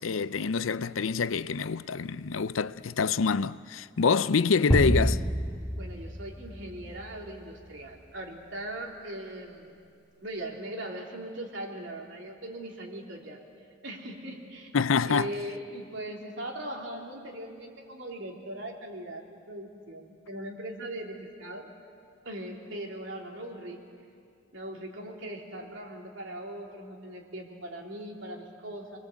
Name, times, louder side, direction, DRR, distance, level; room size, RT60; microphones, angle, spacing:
voice 1, 0.0-5.2 14.7-15.3, left 5 dB, 85° left, 0.6 m, -26 dB
sound 1, 4.7-7.2, equal, 5° right, 1.8 m, -28 dB
voice 2, 5.8-9.8 10.2-13.4 13.8-14.7 15.1-21.7 22.3-23.8 24.5-29.0, right 1 dB, 70° right, 3.6 m, -40 dB
29.0 x 21.5 x 8.2 m
head